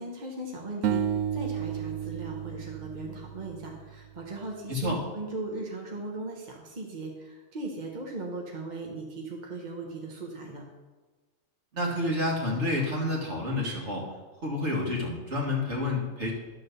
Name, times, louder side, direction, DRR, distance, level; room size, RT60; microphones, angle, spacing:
voice 1, 0.0-10.6, right 2 dB, 35° right, 0 dB, 1.1 m, -38 dB
sound 1, 0.8-4.1, right 8 dB, 75° right, 1.0 m, -32 dB
voice 2, 4.7-5.0 11.7-14.1 14.4-16.3, left 1 dB, 55° right, -2 dB, 2.1 m, -29 dB
11.5 x 3.9 x 6.7 m, 1.3 s
omnidirectional pair, 1.4 m